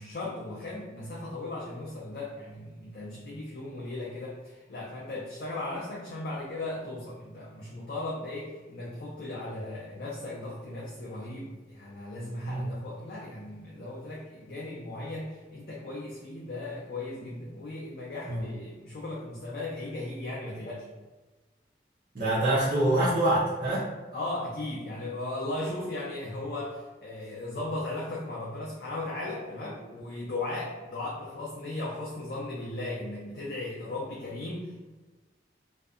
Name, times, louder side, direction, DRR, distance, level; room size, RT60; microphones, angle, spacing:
voice 1, 0.0-20.9 24.1-34.8, left 2 dB, 55° left, -5 dB, 0.4 m, -37 dB
voice 2, 22.1-23.9, right 1 dB, 45° right, -9 dB, 0.6 m, -25 dB
2.6 x 2.2 x 2.3 m, 1.2 s
head